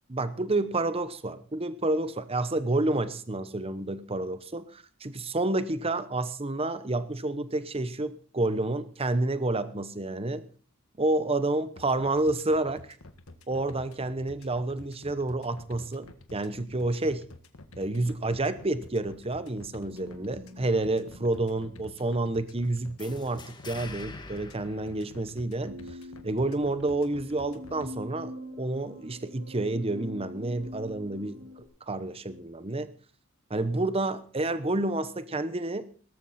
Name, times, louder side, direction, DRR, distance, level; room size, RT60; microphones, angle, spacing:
voice 1, 0.1-10.4 11.0-12.8 13.5-17.3 17.7-25.8 26.2-31.5 31.9-32.9 33.5-35.9, right 2 dB, 25° right, 0.9 m, -29 dB
sound 1, 11.8-27.9, left 2 dB, 80° left, 1.6 m, -49 dB
sound 2, 19.9-23.1 25.6-31.6, left 1 dB, 90° right, 3.9 m, -45 dB
sound 3, 23.0-25.7, left 3 dB, 20° left, 1.5 m, -45 dB
18.5 x 14.0 x 4.3 m
head